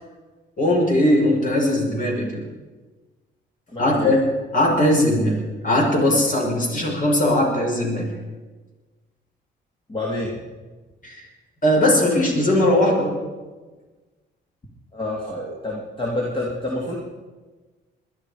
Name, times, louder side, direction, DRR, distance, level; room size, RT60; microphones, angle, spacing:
voice 1, 0.6-2.4 3.8-4.2 4.5-5.4 5.6-8.1 11.0-11.2 11.6-13.1, left 1 dB, 40° left, -1 dB, 5.8 m, -19 dB
voice 2, 3.7-4.2 9.9-10.3 14.9-17.0, left 1 dB, 25° left, -3 dB, 2.8 m, -28 dB
21.0 x 11.5 x 5.0 m, 1.3 s
cardioid pair, 90°, 20 cm